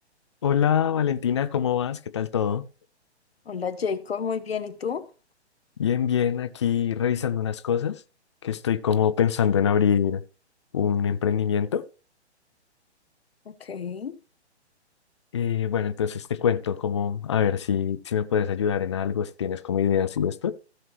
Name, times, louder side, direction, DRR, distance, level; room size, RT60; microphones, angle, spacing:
voice 1, 0.4-2.6 5.8-8.0 8.4-10.2 10.7-11.8 15.3-20.5, left 8 dB, 25° left, 0.4 m, -24 dB
voice 2, 3.5-5.1 13.5-14.2, left 6 dB, 60° left, 1.0 m, -30 dB
15.5 x 5.8 x 3.1 m
figure-of-eight pair, 130°, 34 cm